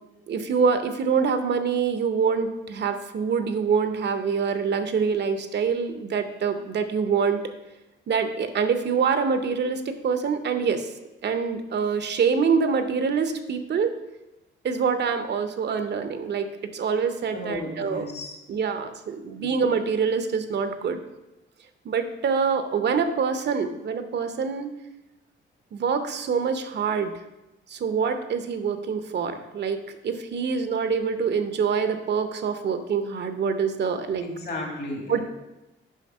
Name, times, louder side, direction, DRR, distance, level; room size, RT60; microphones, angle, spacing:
voice 1, 0.3-7.4 8.1-10.9 11.2-13.9 14.6-18.1 18.5-21.0 21.8-24.7 25.7-27.1 27.7-34.3 35.1-35.2, right 6 dB, 55° right, 9 dB, 0.7 m, -25 dB
voice 2, 17.3-18.4 19.4-19.5 34.2-35.2, left 1 dB, 55° left, 1 dB, 2.1 m, -34 dB
6.4 x 5.2 x 5.4 m, 0.98 s
cardioid pair, 105°, 20 cm